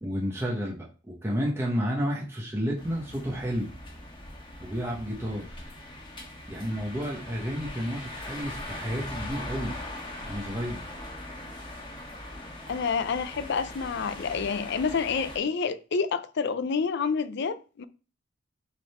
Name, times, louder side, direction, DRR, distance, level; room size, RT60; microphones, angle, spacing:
voice 1, 0.0-3.7 4.6-5.6 6.5-9.8 10.2-10.8, equal, 15° right, 1.2 m, -31 dB
sound 1, 2.8-15.4, left 1 dB, 25° left, 1.4 m, -41 dB
voice 2, 12.7-17.8, left 5 dB, 60° left, 0.5 m, -28 dB
6.3 x 3.8 x 4.3 m
head